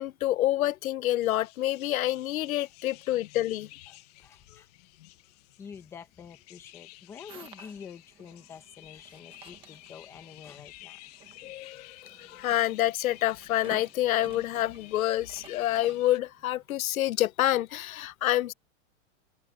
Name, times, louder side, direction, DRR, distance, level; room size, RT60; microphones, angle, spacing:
voice 1, 0.0-3.7 11.4-11.8 12.3-18.5, left 14 dB, 85° left, 0.7 m, -27 dB
sound 1, 1.2-16.2, left 19 dB, 30° left, 1.4 m, -52 dB
voice 2, 3.9-4.7 5.6-11.0, left 7 dB, 5° left, 0.9 m, -47 dB
sound 2, 7.3-16.6, right 10 dB, 10° right, 1.2 m, -54 dB
open air
supercardioid pair, 180°, 41 cm